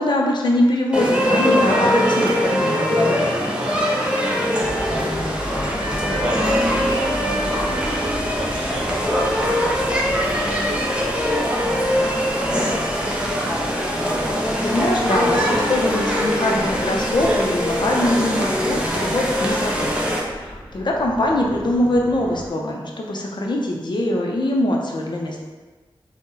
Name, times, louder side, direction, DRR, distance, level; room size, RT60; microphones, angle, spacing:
voice 1, 0.0-3.3 14.6-25.4, left 1 dB, 55° left, 0 dB, 0.5 m, -22 dB
sound 1, 0.9-20.2, equal, 10° right, 0.5 m, -22 dB
voice 2, 3.6-9.8 10.3-13.2 20.4-20.9, right 1 dB, 90° right, -3 dB, 0.6 m, -36 dB
sound 2, 4.6-22.5, equal, 10° left, 1.1 m, -35 dB
2.7 x 2.1 x 3.7 m, 1.3 s
wide cardioid pair, 85°, 9 cm